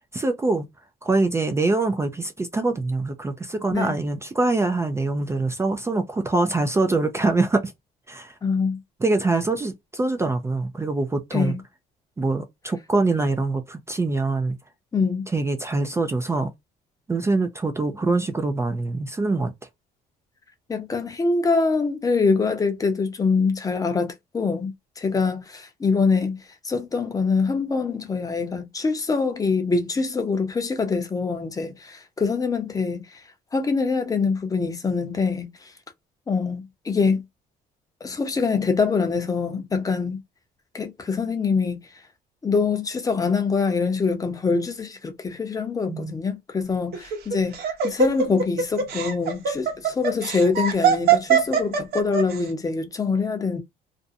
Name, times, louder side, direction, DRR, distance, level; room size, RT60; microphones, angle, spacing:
voice 1, 0.1-0.6 1.0-7.7 8.1-8.3 9.0-11.6 12.2-14.6 15.3-16.5 17.1-19.5 45.9-46.2, right 3 dB, 15° right, 0.4 m, -24 dB
voice 2, 8.4-8.8 11.3-11.6 14.9-15.3 20.7-26.4 26.6-33.2 33.5-35.5 36.3-37.2 38.0-40.2 40.7-41.8 42.4-47.5 47.8-53.6, left 4 dB, 20° left, 0.7 m, -24 dB
Laughter, 46.9-52.4, right 7 dB, 65° right, 0.9 m, -22 dB
2.5 x 2.1 x 2.6 m
cardioid pair, 110°, 17 cm